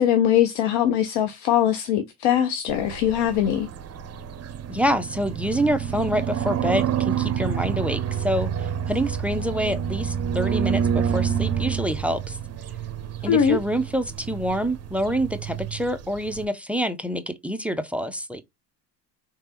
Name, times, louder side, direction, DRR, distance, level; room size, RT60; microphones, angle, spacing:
voice 1, 0.0-3.7 13.2-13.6, left 10 dB, 55° left, 0.9 m, -21 dB
sound 1, 2.7-16.5, right 8 dB, 30° right, 0.9 m, -28 dB
voice 2, 4.7-12.4 13.2-18.4, equal, 5° right, 0.4 m, -26 dB
4.8 x 3.3 x 3.0 m
hypercardioid pair, 85°, 49 cm